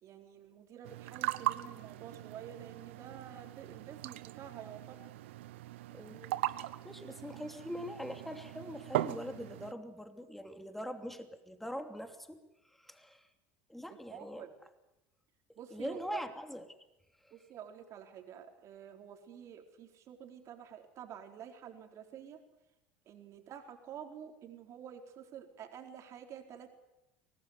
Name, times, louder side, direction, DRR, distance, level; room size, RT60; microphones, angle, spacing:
voice 1, 0.0-5.0 13.9-14.5 15.6-16.3 17.3-22.4 23.1-26.7, right 9 dB, 50° right, 4 dB, 4.3 m, -49 dB
sound 1, 0.8-9.7, right 16 dB, 75° right, 0.9 m, -39 dB
voice 2, 5.9-12.4 12.6-13.3 13.7-14.5 15.5-16.6 17.2-17.5, equal, 5° left, 7 dB, 2.9 m, -43 dB
24.0 x 18.5 x 9.6 m, 0.94 s
hypercardioid pair, 75°, 7 cm